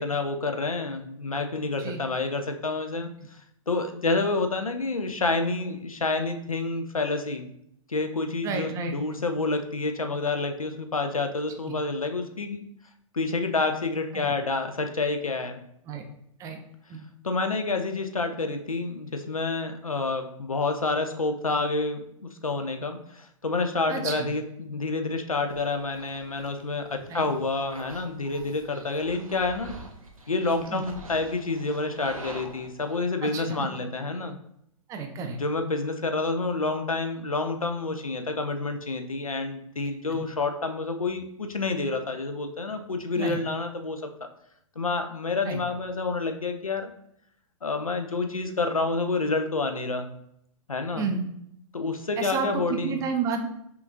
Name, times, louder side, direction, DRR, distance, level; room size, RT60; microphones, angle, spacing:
voice 1, 0.0-3.1 3.7-7.5 7.9-12.7 13.1-15.6 17.2-29.7 30.3-34.4 35.4-44.0 44.8-46.9 47.6-50.1 50.7-51.1 51.7-53.0, left 3 dB, 85° left, 6 dB, 0.5 m, -28 dB
voice 2, 8.4-9.0 11.7-11.8 14.1-14.3 15.9-16.0 16.4-16.6 16.9-17.1 23.9-24.3 27.1-27.3 30.7-30.8 33.2-33.7 34.9-35.4 40.1-40.3 43.1-43.4 45.4-45.6 51.0-51.3 52.2-53.5, right 5 dB, 20° right, 4 dB, 0.4 m, -31 dB
sound 1, 25.5-33.0, right 2 dB, 85° right, 0.7 m, -45 dB
5.7 x 2.5 x 2.5 m, 0.74 s
figure-of-eight pair, 110°, 17 cm